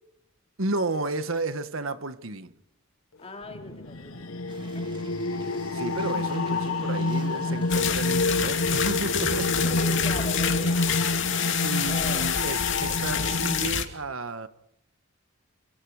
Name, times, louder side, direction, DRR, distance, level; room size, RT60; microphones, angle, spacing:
voice 1, 0.6-2.5 5.7-9.6 11.6-14.5, right 2 dB, 75° right, 1.5 m, -32 dB
voice 2, 3.2-4.5 4.7-4.9 9.7-11.0 11.9-12.3, left 2 dB, 30° left, 3.7 m, -38 dB
sound 1, 3.5-13.7, left 2 dB, 85° left, 1.3 m, -28 dB
sound 2, 4.5-13.1, right 2 dB, 25° right, 2.6 m, -47 dB
sound 3, 7.7-13.8, left 9 dB, 60° left, 2.8 m, -28 dB
29.0 x 28.0 x 5.0 m
head